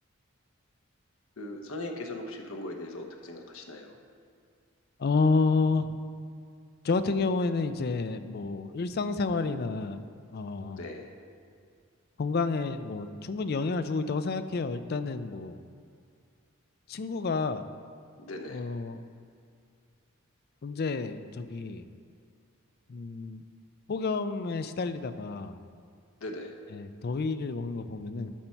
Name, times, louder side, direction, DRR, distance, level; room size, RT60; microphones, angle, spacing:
voice 1, 1.4-4.0 10.8-11.1 18.2-18.7 26.2-26.5, left 1 dB, 70° left, 3 dB, 0.9 m, -39 dB
voice 2, 5.0-6.0 6.8-10.0 10.3-10.8 12.2-15.6 16.9-17.7 18.5-19.0 20.6-21.9 22.9-23.4 23.9-25.6 26.7-28.3, left 4 dB, 45° left, 11 dB, 0.4 m, -30 dB
11.5 x 5.8 x 4.5 m, 2.3 s
head